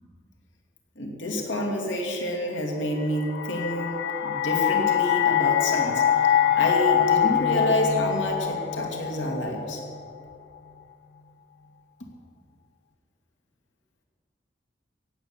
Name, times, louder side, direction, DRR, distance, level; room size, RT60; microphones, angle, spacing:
voice 1, 1.0-6.0 6.5-9.8, left 1 dB, 90° left, 1 dB, 2.3 m, -28 dB
sound 1, 3.0-10.1, left 9 dB, 60° left, 0.7 m, -24 dB
17.0 x 8.3 x 7.3 m, 2.3 s
head